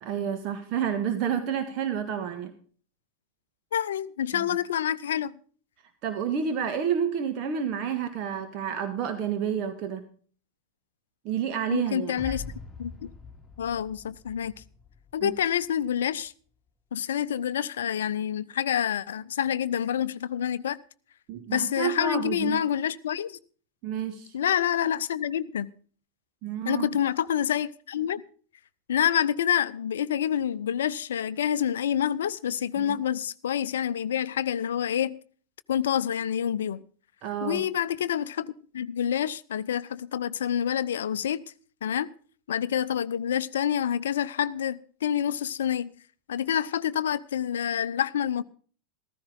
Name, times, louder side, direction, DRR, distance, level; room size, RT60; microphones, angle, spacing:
voice 1, 0.0-2.5 4.3-4.4 6.0-10.0 11.2-12.4 15.2-15.3 21.3-22.6 23.8-24.3 26.4-26.8 32.8-33.0 37.2-37.6, right 8 dB, 40° right, 1.6 m, -29 dB
voice 2, 3.7-5.4 11.7-12.4 12.8-13.1 13.6-14.5 15.1-16.3 16.9-20.8 21.5-23.4 24.3-25.7 26.6-28.2 28.9-35.2 35.7-36.8 37.4-41.4 41.8-42.1 42.5-45.9 46.3-48.4, left 9 dB, 60° left, 0.6 m, -27 dB
sound 1, 12.2-15.5, left 4 dB, 10° left, 2.2 m, -43 dB
15.0 x 14.5 x 3.8 m
figure-of-eight pair, 90°, 0 cm